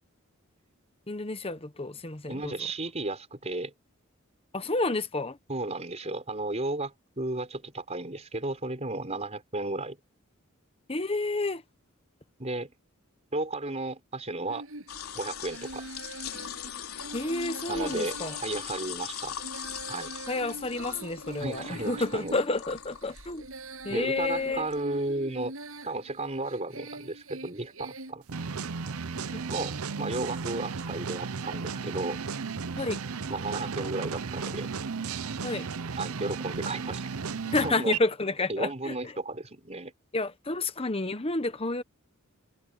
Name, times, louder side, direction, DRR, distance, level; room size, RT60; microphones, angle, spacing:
voice 1, 1.1-2.5 4.5-5.4 10.9-11.6 17.1-18.4 20.3-23.5 23.8-24.7 29.3-29.4 32.8-33.0 35.4-35.7 37.4-39.1 40.1-41.8, left 2 dB, 25° left, 1.2 m, -30 dB
voice 2, 2.3-3.7 5.5-10.0 12.4-12.7 13.3-14.7 15.1-15.9 17.7-18.1 18.4-19.4 19.9-20.1 21.4-22.3 23.9-25.6 25.8-28.2 29.5-32.2 33.3-34.7 36.0-37.0 37.6-37.9 38.5-39.9, right 2 dB, 30° right, 4.6 m, -34 dB
Female singing, 14.5-28.1, right 2 dB, 70° right, 7.7 m, -44 dB
sound 1, 14.9-24.8, left 9 dB, 85° left, 3.6 m, -41 dB
sound 2, 28.3-38.0, right 5 dB, 90° right, 0.7 m, -34 dB
head